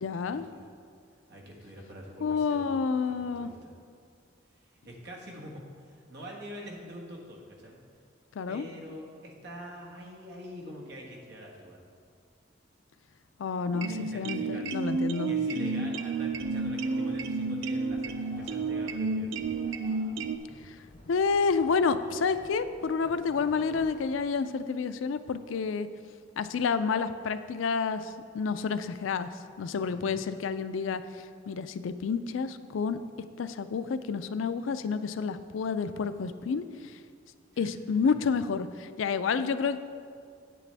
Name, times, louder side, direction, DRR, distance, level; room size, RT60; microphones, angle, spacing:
voice 1, 0.0-0.5 2.2-3.5 8.4-8.7 13.4-15.3 20.7-20.8 21.1-25.9 26.4-29.3 29.6-31.0 31.4-33.0 33.4-36.7 37.6-39.8, left 5 dB, 90° left, 12 dB, 0.4 m, -29 dB
voice 2, 1.3-3.7 4.8-7.8 8.5-11.8 13.8-14.9 15.2-19.4 29.9-30.1 37.5-37.7, equal, 60° right, -2 dB, 1.5 m, -45 dB
sound 1, 13.7-20.4, right 3 dB, 80° right, 0.4 m, -31 dB
sound 2, 15.7-24.2, left 1 dB, 40° left, 1.7 m, -51 dB
9.0 x 8.4 x 3.4 m, 2.2 s
head